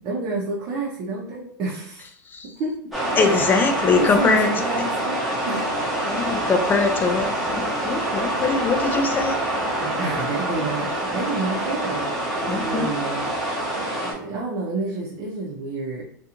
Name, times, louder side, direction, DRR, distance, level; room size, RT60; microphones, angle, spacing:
voice 1, 0.0-2.1 2.6-2.8 3.2-3.5 3.9-5.2 5.5-5.7 9.8-13.7 14.0-16.0, right 3 dB, 40° right, -5 dB, 0.6 m, -29 dB
sound 1, 2.9-14.1, right 1 dB, ahead, 0.8 m, -26 dB
voice 2, 3.2-4.5 6.1-9.4 12.5-12.9, left 4 dB, 20° left, 5 dB, 0.4 m, -22 dB
2.5 x 2.3 x 2.8 m, 0.66 s
hypercardioid pair, 120°, 10 cm